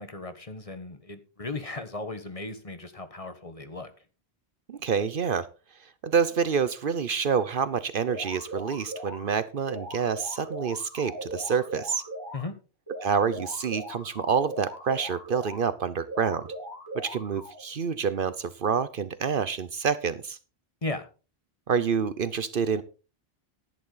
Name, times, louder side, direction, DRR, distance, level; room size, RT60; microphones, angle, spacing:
voice 1, 0.0-3.9 12.3-12.6 20.8-21.1, left 2 dB, 35° left, 9 dB, 1.3 m, -36 dB
voice 2, 4.7-5.5 6.0-12.0 13.0-16.5 16.9-20.4 21.7-22.8, right 6 dB, 60° right, 15 dB, 0.9 m, -27 dB
sound 1, 8.1-9.3 9.7-12.5 12.9-15.7 16.1-17.6, equal, 20° right, 4.6 m, -39 dB
11.5 x 10.5 x 3.9 m, 0.33 s
omnidirectional pair, 1.1 m